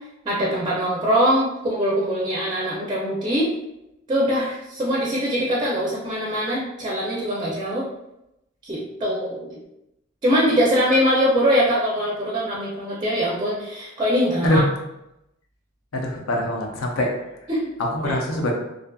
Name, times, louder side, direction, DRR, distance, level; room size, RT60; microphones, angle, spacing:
voice 1, 0.2-3.5 4.1-7.9 8.6-9.6 10.2-14.6 17.5-17.6 18.0-18.1, equal, 20° right, -5 dB, 0.4 m, -22 dB
voice 2, 15.9-17.1 17.4-17.5 17.8-18.5, left 1 dB, 80° left, 1 dB, 0.5 m, -23 dB
2.5 x 2.4 x 2.2 m, 0.88 s
head